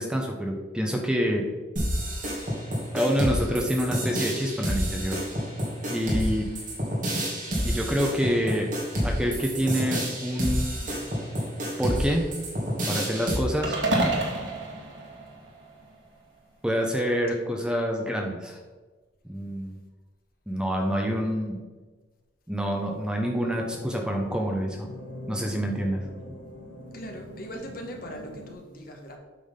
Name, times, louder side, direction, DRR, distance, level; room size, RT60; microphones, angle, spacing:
voice 1, 0.0-1.4 2.9-5.2 5.9-6.5 7.6-8.7 9.0-10.9 11.8-12.2 12.9-13.8 16.6-18.6 19.3-19.8 20.5-21.6 22.5-24.9 25.3-26.0, equal, 5° right, 1 dB, 0.8 m, -27 dB
sound 1, 1.8-13.4, equal, 45° right, 2.4 m, -29 dB
sound 2, 13.6-16.0, right 2 dB, 80° right, 1.9 m, -28 dB
sound 3, 23.5-28.5, left 1 dB, 70° left, 1.7 m, -43 dB
voice 2, 26.9-29.2, equal, 50° left, 2 dB, 1.3 m, -40 dB
8.5 x 6.1 x 3.8 m, 1.3 s
head